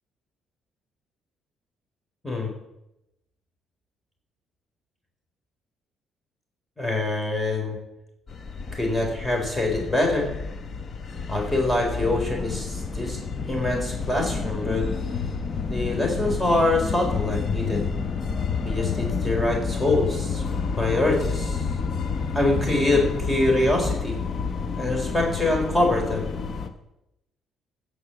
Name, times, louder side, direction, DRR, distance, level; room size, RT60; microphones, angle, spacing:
voice 1, 6.8-7.8 8.7-10.3 11.3-14.9 15.7-17.9 18.6-20.4 20.7-21.7 22.3-24.2 24.8-26.3, left 2 dB, 15° left, 1 dB, 4.2 m, -24 dB
sound 1, 8.3-26.7, left 5 dB, 45° left, 1.2 m, -29 dB
15.0 x 5.5 x 7.1 m, 0.88 s
supercardioid pair, 70°, 0 cm